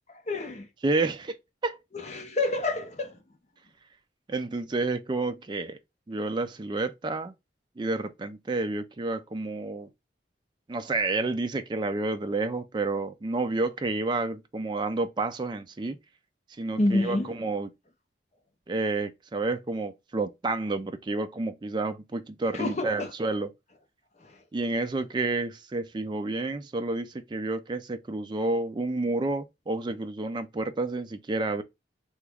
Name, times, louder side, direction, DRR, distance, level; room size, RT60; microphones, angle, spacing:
voice 1, 0.1-0.7 1.9-3.2 16.8-17.3 22.5-23.1 24.2-24.4, left 2 dB, 35° left, 0.6 m, -28 dB
voice 2, 0.8-1.4 1.6-1.8 4.3-5.8 6.1-7.3 7.8-9.9 10.7-16.0 16.6-17.7 18.7-23.5 24.5-31.6, right 3 dB, 25° right, 0.3 m, -30 dB
3.0 x 2.3 x 3.4 m
head